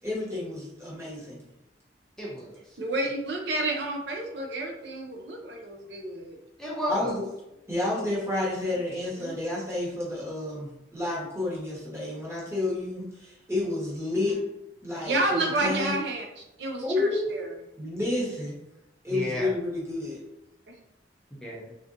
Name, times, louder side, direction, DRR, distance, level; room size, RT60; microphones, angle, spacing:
voice 1, 0.0-1.4 6.9-7.2 7.7-14.4 14.8-15.9 16.8-17.3 17.8-18.6 19.0-20.2, left 2 dB, 15° right, -6 dB, 1.1 m, -30 dB
voice 2, 2.2-2.8 6.6-7.1 19.1-19.5 21.3-21.7, equal, 5° left, -6 dB, 0.5 m, -33 dB
voice 3, 2.8-6.4 8.6-8.8 9.2-9.4 14.1-14.4 15.0-17.5 20.7-20.8, right 2 dB, 70° right, 1 dB, 0.5 m, -30 dB
3.6 x 2.5 x 2.5 m, 0.88 s
head